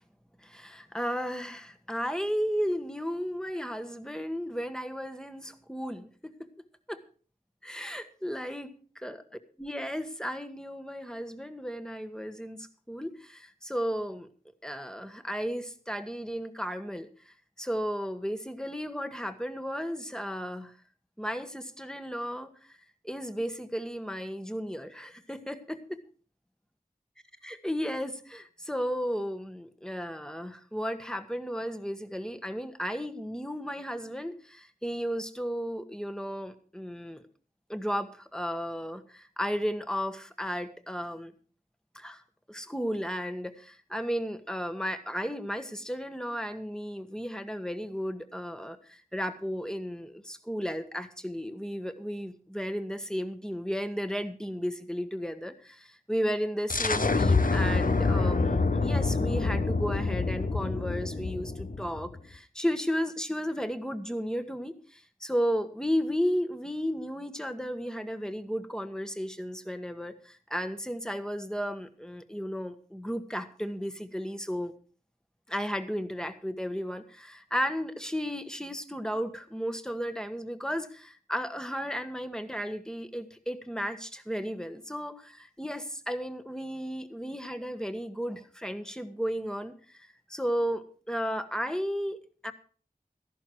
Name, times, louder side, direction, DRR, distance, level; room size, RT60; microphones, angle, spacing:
voice 1, 0.4-6.3 6.9-7.0 7.6-8.7 9.0-9.2 9.6-14.3 14.6-20.7 21.2-22.8 23.0-26.0 27.4-37.2 37.7-41.3 41.9-42.2 42.5-74.7 75.5-92.5, equal, 5° left, 9 dB, 1.4 m, -34 dB
sound 1, 56.7-62.2, left 3 dB, 65° left, 0.9 m, -26 dB
14.0 x 11.5 x 4.6 m, 0.40 s
wide cardioid pair, 45°, 16 cm